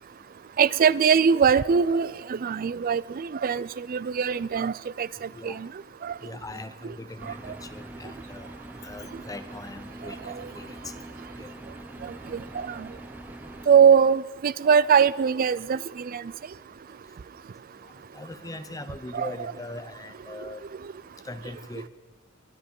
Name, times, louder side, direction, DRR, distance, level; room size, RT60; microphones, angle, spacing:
voice 1, 0.6-5.7 6.0-6.1 7.3-7.4 12.0-12.9 13.7-16.2 19.1-19.3, right 7 dB, 45° right, 0.4 m, -22 dB
voice 2, 6.2-8.5 8.8-11.0 11.4-11.5 18.1-20.6 21.2-21.9, left 2 dB, 20° left, 0.8 m, -40 dB
sound 1, 7.2-13.7, right 1 dB, 10° right, 0.6 m, -43 dB
23.5 x 10.5 x 5.4 m
head